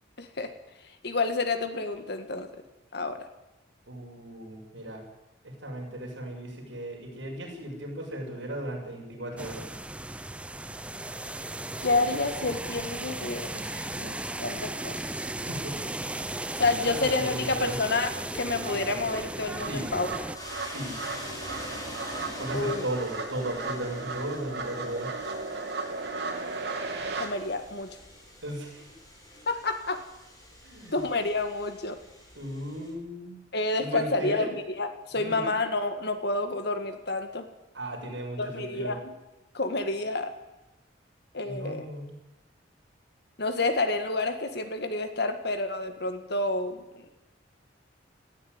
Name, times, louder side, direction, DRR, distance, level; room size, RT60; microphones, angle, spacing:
voice 1, 0.2-0.5 1.0-2.5 2.9-3.3 11.8-15.3 16.5-20.3 22.5-22.9 27.2-27.9 29.5-30.0 30.9-32.0 33.5-37.5 38.4-39.2 39.5-40.3 41.3-41.9 43.4-47.2, left 3 dB, 60° left, 8 dB, 2.1 m, -29 dB
voice 2, 3.9-5.0 5.4-9.6 15.5-15.8 16.8-17.8 19.7-19.9 20.7-21.0 22.4-25.1 28.4-28.9 30.6-31.0 32.3-33.4 33.8-34.5 35.1-35.4 37.7-39.0 41.4-42.1, right 1 dB, 80° right, -1 dB, 7.1 m, -36 dB
sound 1, 9.4-20.4, right 1 dB, 5° right, 0.6 m, -36 dB
sound 2, 17.2-17.3 17.6-27.3, right 3 dB, 60° right, 2.6 m, -36 dB
sound 3, 20.3-32.9, equal, 20° left, 6.3 m, -44 dB
18.0 x 15.0 x 9.8 m, 1.0 s
head